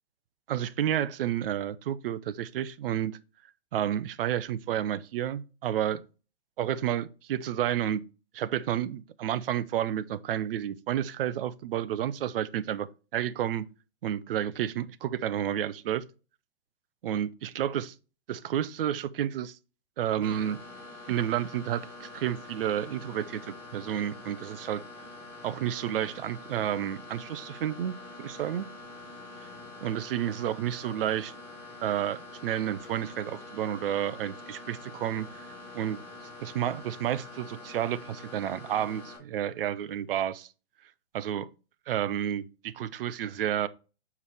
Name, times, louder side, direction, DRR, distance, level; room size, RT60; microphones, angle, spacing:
voice 1, 0.5-3.2 3.7-6.0 6.6-8.0 8.3-12.9 13.1-13.7 14.0-16.0 17.0-17.9 18.3-19.6 20.0-20.6 21.1-24.8 25.4-28.6 29.8-31.3 31.8-36.0 36.4-40.5 41.1-41.5 41.9-43.7, right 11 dB, 50° right, 0.6 m, -31 dB
sound 1, 20.2-39.2, left 2 dB, 5° left, 2.9 m, -46 dB
6.9 x 4.7 x 3.3 m
hypercardioid pair, 145°, 35 cm